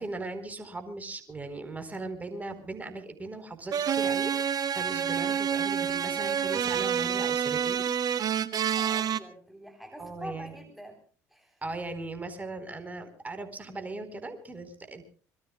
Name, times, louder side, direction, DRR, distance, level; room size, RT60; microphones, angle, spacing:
voice 1, 0.0-7.8 10.0-10.6 11.6-15.0, right 2 dB, 20° right, 8 dB, 4.2 m, -38 dB
sound 1, 3.7-9.2, right 8 dB, 50° right, 1.5 m, -28 dB
voice 2, 8.5-11.0 11.3-11.6, equal, ahead, 4 dB, 3.7 m, -45 dB
25.5 x 22.5 x 2.3 m, 0.42 s
hypercardioid pair, 70°, 9 cm